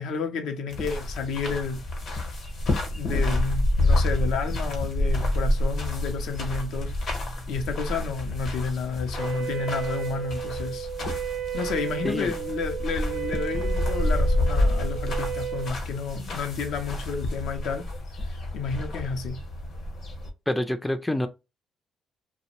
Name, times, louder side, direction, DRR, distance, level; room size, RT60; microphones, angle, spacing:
voice 1, 0.0-1.8 2.9-10.9 11.5-17.8 18.2-19.4, left 5 dB, 85° left, 0.5 m, -31 dB
sound 1, 0.7-20.3, left 1 dB, 65° left, 0.8 m, -28 dB
Wind instrument woodwind instrument, 9.1-15.8, right 10 dB, 85° right, 0.3 m, -33 dB
voice 2, 20.5-21.3, left 1 dB, 10° left, 0.3 m, -26 dB
2.5 x 2.0 x 2.8 m
cardioid pair, 90°, 0 cm